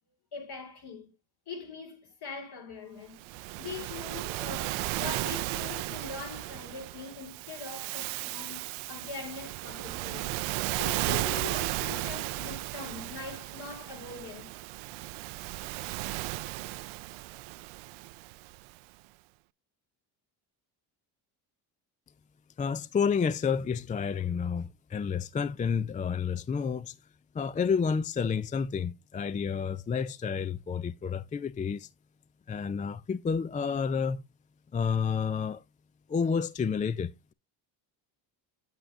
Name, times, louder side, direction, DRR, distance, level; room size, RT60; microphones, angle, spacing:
voice 1, 0.3-1.1 1.5-10.3 10.8-14.5, left 5 dB, 55° left, 4.2 m, -42 dB
Waves surf, 3.2-18.7, right 21 dB, 80° right, 0.5 m, -35 dB
voice 2, 22.6-27.0 27.3-31.9 32.5-34.2 34.7-35.6 36.1-37.3, left 6 dB, 20° left, 0.3 m, -30 dB
8.9 x 8.0 x 2.6 m
supercardioid pair, 85°, 47 cm